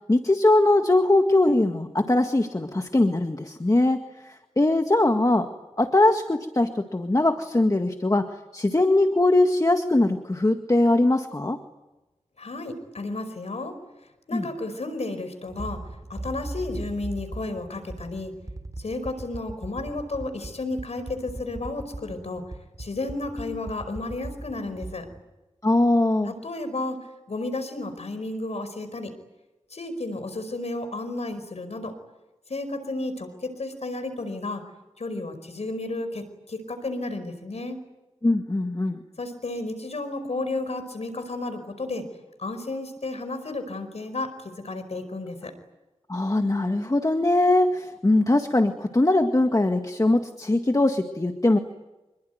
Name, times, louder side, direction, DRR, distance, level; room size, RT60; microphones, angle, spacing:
voice 1, 0.1-5.5 5.8-8.3 8.5-11.6 14.3-14.5 25.6-26.3 38.2-39.0 46.1-51.6, left 2 dB, 30° left, 5 dB, 1.9 m, -21 dB
voice 2, 12.4-13.8 14.3-15.8 16.1-18.3 18.8-22.4 22.8-25.0 26.2-29.1 29.7-32.0 32.5-34.6 35.0-37.8 39.2-42.1 42.4-45.5, left 2 dB, 70° left, 9 dB, 5.0 m, -32 dB
sound 1, 15.5-25.2, right 2 dB, 30° right, 4.0 m, -38 dB
27.5 x 22.0 x 9.3 m, 1.0 s
wide cardioid pair, 60°, 12 cm